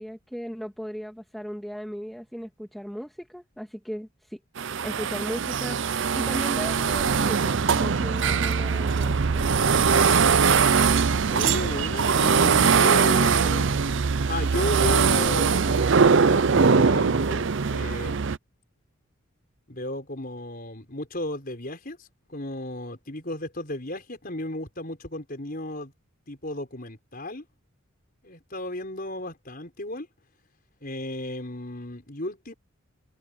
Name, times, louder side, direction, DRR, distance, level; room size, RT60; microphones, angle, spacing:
voice 1, 0.0-4.4 4.8-9.8, equal, ahead, 2.5 m, -37 dB
sound 1, 4.6-18.4, right 5 dB, 60° right, 0.6 m, -21 dB
voice 2, 11.3-13.9 14.3-18.4 19.7-25.9 26.3-27.5 28.2-30.1 30.8-32.5, left 1 dB, 45° left, 5.2 m, -34 dB
head